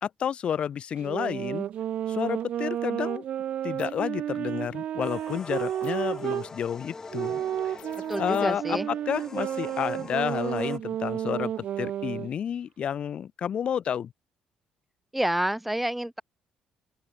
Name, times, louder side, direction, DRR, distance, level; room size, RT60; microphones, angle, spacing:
voice 1, 0.0-1.7 2.1-3.2 3.6-7.8 8.2-14.1, left 8 dB, 50° left, 2.2 m, -30 dB
sound 1, 1.0-6.5 7.1-12.3, right 10 dB, 60° right, 0.6 m, -31 dB
sound 2, 3.8-4.1 5.8-6.2 7.8-8.7, left 15 dB, 80° left, 3.0 m, -54 dB
sound 3, 5.0-10.8, left 4 dB, 20° left, 5.1 m, -44 dB
voice 2, 8.1-8.9 15.1-16.2, right 1 dB, 5° right, 0.3 m, -28 dB
open air
cardioid pair, 125°, 2 cm